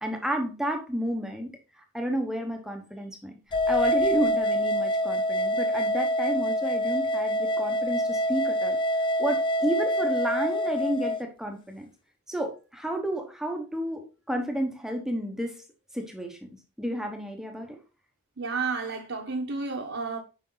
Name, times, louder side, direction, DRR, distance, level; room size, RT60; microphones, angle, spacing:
voice 1, 0.0-1.5 1.9-3.3 3.7-8.8 9.2-11.9 12.3-15.5 15.9-16.4 16.8-17.8, right 1 dB, ahead, 1.1 m, -31 dB
sound 1, 3.5-11.2, equal, 20° left, 0.5 m, -26 dB
voice 2, 18.4-20.2, right 4 dB, 60° right, 1.3 m, -31 dB
9.6 x 5.4 x 3.9 m
head